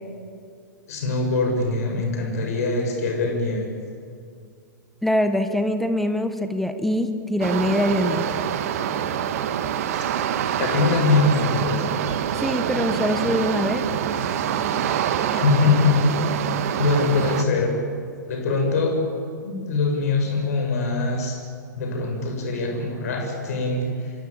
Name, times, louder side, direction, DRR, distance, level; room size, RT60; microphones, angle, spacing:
voice 1, 0.9-3.7 9.9-10.0 10.6-11.9 15.3-17.7 18.3-19.0 19.4-21.4 21.7-24.1, left 3 dB, 55° left, 2 dB, 7.1 m, -23 dB
voice 2, 5.0-8.4 12.4-13.8, equal, ahead, 8 dB, 1.6 m, -23 dB
sound 1, 7.4-17.4, right 9 dB, 50° right, 1.8 m, -25 dB
28.0 x 23.0 x 8.8 m, 2.3 s
figure-of-eight pair, 105°, 10 cm